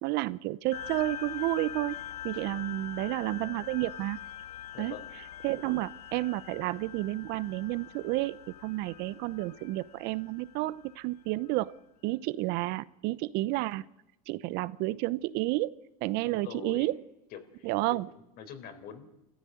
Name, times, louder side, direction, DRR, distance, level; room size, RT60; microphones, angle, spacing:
voice 1, 0.0-1.9 2.2-4.2 4.8-4.9 5.4-11.7 12.0-13.8 14.3-15.7 16.0-17.0 17.6-18.1, right 18 dB, 60° right, 17 dB, 0.9 m, -31 dB
sound 1, 0.7-11.6, left 10 dB, 85° left, 1.8 m, -43 dB
voice 2, 4.7-5.1 16.2-16.9 17.3-19.1, left 8 dB, 50° left, 9 dB, 4.2 m, -45 dB
28.0 x 15.0 x 9.3 m, 0.93 s
hypercardioid pair, 100°, 19 cm